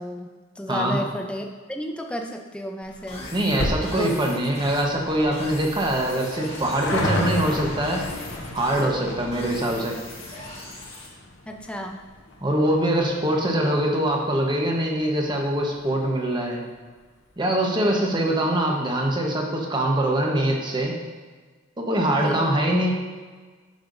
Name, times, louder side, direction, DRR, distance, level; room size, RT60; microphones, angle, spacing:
voice 1, 0.0-3.3 3.9-4.1 11.5-12.0 22.1-22.5, equal, 5° left, 3 dB, 0.6 m, -32 dB
voice 2, 0.7-1.0 3.3-8.1 8.5-10.0 12.4-16.6 17.4-20.9 21.8-23.0, right 1 dB, 20° right, 0 dB, 1.1 m, -23 dB
sound 1, 2.8-15.6 15.9-16.0 16.8-16.9 17.1-17.2 17.5-17.6, left 1 dB, 60° left, 1.0 m, -34 dB
sound 2, 3.1-11.1, left 2 dB, 30° left, 1.4 m, -40 dB
11.5 x 5.7 x 2.6 m, 1.4 s
head